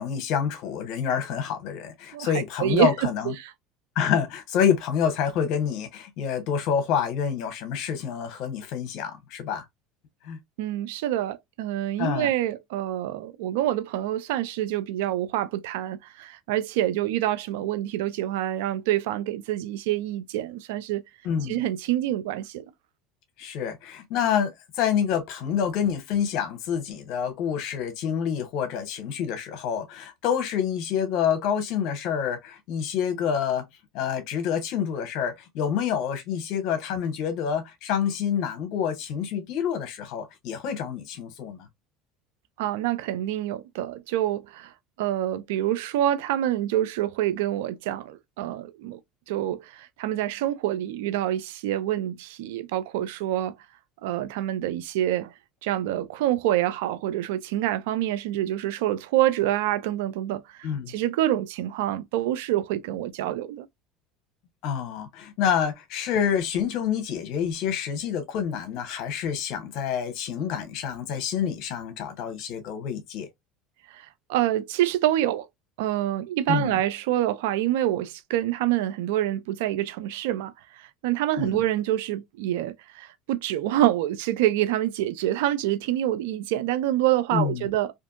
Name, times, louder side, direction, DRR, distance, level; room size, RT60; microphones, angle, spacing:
voice 1, 0.0-3.3 4.0-9.6 10.2-10.4 12.0-12.3 21.2-21.6 23.4-33.6 33.9-41.7 60.6-60.9 64.6-73.3 76.5-76.8 81.4-81.6 87.3-87.7, left 8 dB, 65° left, 0.8 m, -27 dB
voice 2, 10.6-21.0 21.5-22.6 42.6-44.7 45.0-49.0 49.3-53.5 54.0-55.3 55.6-63.7 73.9-75.5 75.8-80.5 80.8-87.9, right 13 dB, 80° right, 0.3 m, -26 dB
2.5 x 2.5 x 2.5 m
supercardioid pair, 90°, 0 cm